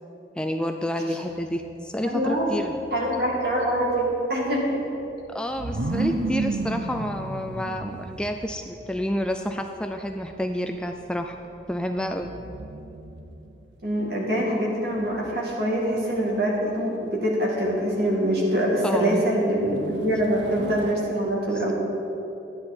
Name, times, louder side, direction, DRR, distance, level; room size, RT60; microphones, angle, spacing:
voice 1, 0.4-2.8 5.3-11.4 11.7-12.3 18.8-19.3, equal, 5° left, 5 dB, 0.3 m, -29 dB
sound 1, 1.3-13.7 14.9-15.7 19.6-20.9, right 2 dB, 85° right, 0.7 m, -34 dB
voice 2, 2.0-2.5 2.9-4.6 13.8-21.7, right 1 dB, 60° right, -3 dB, 2.3 m, -24 dB
12.5 x 9.6 x 4.4 m, 3.0 s
head